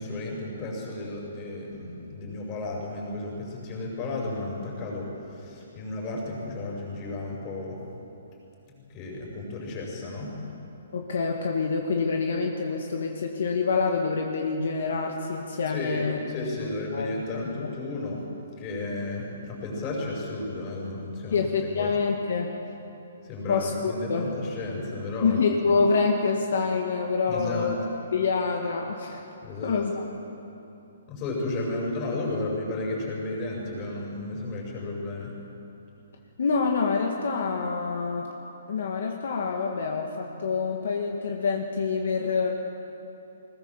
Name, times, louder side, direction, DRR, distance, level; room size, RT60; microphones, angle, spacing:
voice 1, 0.0-7.8 8.7-10.4 15.7-18.2 18.5-21.5 21.7-22.0 23.2-25.4 27.3-27.7 29.4-29.8 31.1-35.4, left 2 dB, 25° left, -2 dB, 6.0 m, -33 dB
voice 2, 10.9-16.2 16.6-17.7 21.3-22.5 23.5-24.3 25.2-27.8 28.1-29.2 29.6-30.0 36.4-38.3 38.7-42.5, left 4 dB, 65° left, 2 dB, 2.0 m, -26 dB
21.0 x 20.0 x 7.4 m, 2.9 s
hypercardioid pair, 170°, 0 cm